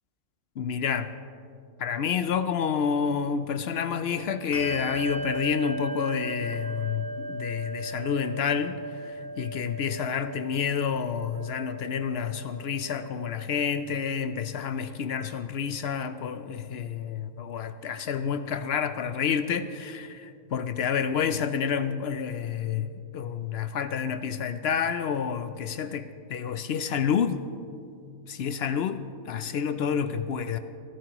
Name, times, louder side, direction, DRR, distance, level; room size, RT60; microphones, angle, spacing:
voice 1, 0.6-1.1 1.8-27.4 28.3-30.6, left 7 dB, 65° left, 11 dB, 0.6 m, -29 dB
Bell, 4.5-14.5, right 1 dB, 50° left, 2.8 m, -38 dB
22.0 x 12.5 x 3.0 m, 2.4 s
omnidirectional pair, 1.5 m